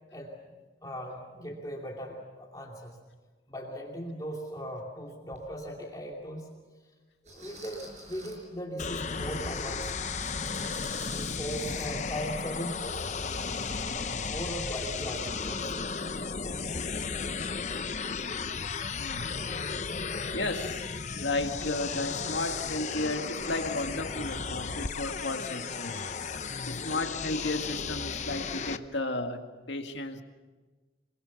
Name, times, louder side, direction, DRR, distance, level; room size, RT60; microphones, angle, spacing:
voice 1, 0.8-3.0 3.5-6.5 7.3-9.9 11.0-13.0 14.3-16.0, equal, 20° left, -1 dB, 2.7 m, -38 dB
sound 1, 5.3-5.4 6.1-6.2 7.3-8.5 10.2-11.9 12.2-12.4 12.8-12.9, right 2 dB, 40° right, 5.4 m, -48 dB
sound 2, 8.8-28.8, left 5 dB, 40° left, 0.8 m, -34 dB
voice 2, 19.0-19.4 20.3-20.9 21.2-26.0 26.7-30.2, left 2 dB, 80° left, 5 dB, 2.0 m, -33 dB
28.0 x 21.5 x 7.2 m, 1.3 s
head